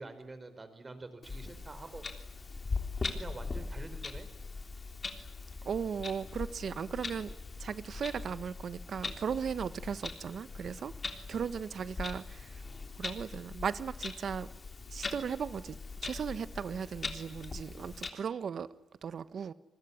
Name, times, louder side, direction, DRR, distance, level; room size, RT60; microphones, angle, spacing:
voice 1, 0.0-2.3 3.1-4.3, right 2 dB, 25° right, 10 dB, 4.8 m, -47 dB
Clock, 1.2-18.1, left 4 dB, 30° left, 3.4 m, -41 dB
voice 2, 5.6-7.3 7.6-10.9 11.3-12.6 13.0-14.5 14.9-15.8 16.0-18.7 19.0-19.5, right 7 dB, 50° right, 14 dB, 1.3 m, -37 dB
27.0 x 20.5 x 9.9 m, 0.95 s
cardioid pair, 90°, 0 cm